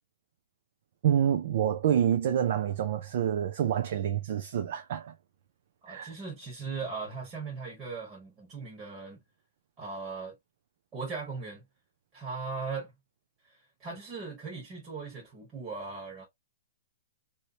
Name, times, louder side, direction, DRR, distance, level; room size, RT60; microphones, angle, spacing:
voice 1, 1.0-5.1 5.9-6.1, right 9 dB, 55° right, 0.6 m, -27 dB
voice 2, 5.8-9.2 9.8-10.3 10.9-11.6 12.1-12.9 13.4-16.2, right 4 dB, 20° right, 1.4 m, -38 dB
3.1 x 2.8 x 2.8 m
hypercardioid pair, 165°, 0 cm